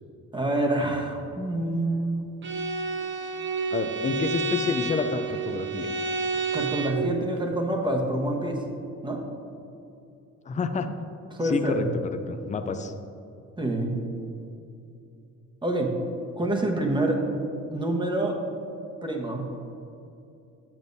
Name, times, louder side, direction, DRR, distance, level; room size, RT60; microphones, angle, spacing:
voice 1, 0.3-2.2 6.5-8.6 9.0-9.2 11.3-11.9 13.6-14.0 15.6-15.9 16.4-17.2 17.7-18.4 19.0-19.5, right 1 dB, 15° right, 1 dB, 1.0 m, -26 dB
Bowed string instrument, 2.4-7.1, right 4 dB, 40° right, 0.7 m, -30 dB
voice 2, 3.7-5.9 10.5-10.9 11.4-12.9, left 4 dB, 25° left, 8 dB, 0.4 m, -29 dB
7.9 x 7.1 x 2.6 m, 2.7 s
cardioid pair, 90°, 30 cm